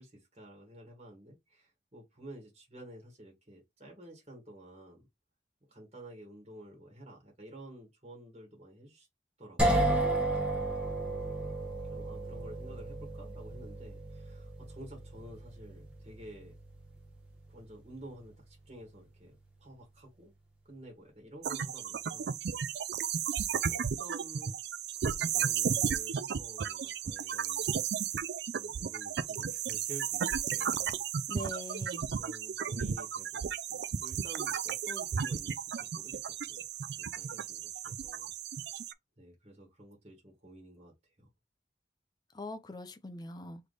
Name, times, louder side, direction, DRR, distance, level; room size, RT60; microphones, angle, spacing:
voice 1, 0.0-5.0 5.7-9.1 9.4-9.9 10.2-10.7 11.9-16.5 17.5-20.3 20.7-22.3 23.6-24.6 25.1-28.2 28.5-31.4 31.8-36.6 36.9-38.8 39.2-40.9 41.2-41.3, right 1 dB, 35° right, 1.6 m, -51 dB
sound 1, 9.6-19.4, right 1 dB, 5° right, 1.2 m, -34 dB
sound 2, 21.4-38.9, right 7 dB, 70° right, 0.4 m, -34 dB
voice 2, 31.3-32.0 42.3-43.6, left 1 dB, 25° left, 0.6 m, -42 dB
3.3 x 3.2 x 3.9 m
head